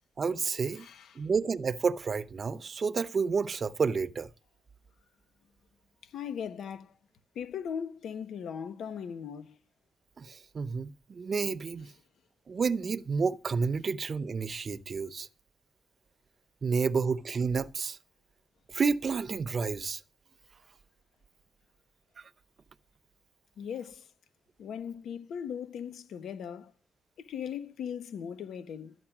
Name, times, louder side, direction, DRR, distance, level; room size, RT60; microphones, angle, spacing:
voice 1, 0.2-0.9 1.2-4.3 10.2-11.9 12.5-15.3 16.6-18.0 18.7-20.0 22.2-22.3, right 5 dB, 45° right, 0.8 m, -30 dB
voice 2, 0.8-1.3 6.0-6.9 7.3-9.6 23.6-24.1 24.6-26.7 27.2-28.9, left 8 dB, 85° left, 1.2 m, -39 dB
13.0 x 9.3 x 6.0 m
cardioid pair, 105°, 0 cm